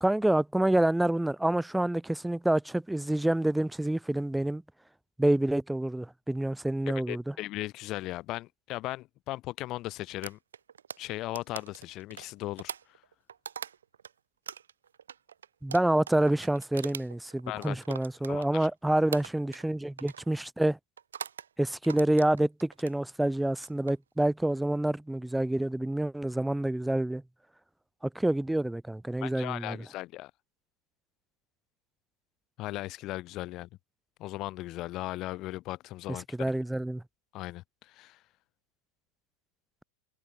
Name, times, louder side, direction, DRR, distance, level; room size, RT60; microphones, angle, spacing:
voice 1, 0.0-4.6 5.2-7.3 15.6-20.8 21.6-27.2 28.0-29.8 36.4-37.0, right 1 dB, 5° right, 1.3 m, -27 dB
voice 2, 6.9-10.4 11.0-13.0 17.5-17.8 18.3-18.7 29.2-30.3 32.6-33.7 34.2-36.5 37.3-38.2, left 17 dB, 35° left, 1.1 m, -37 dB
sound 1, 10.2-14.1 14.5-18.7 19.1-19.7 20.0-20.3 21.0-21.5 21.8-23.0 23.5-23.9, right 8 dB, 65° right, 1.1 m, -42 dB
figure-of-eight pair, 90°, 0 cm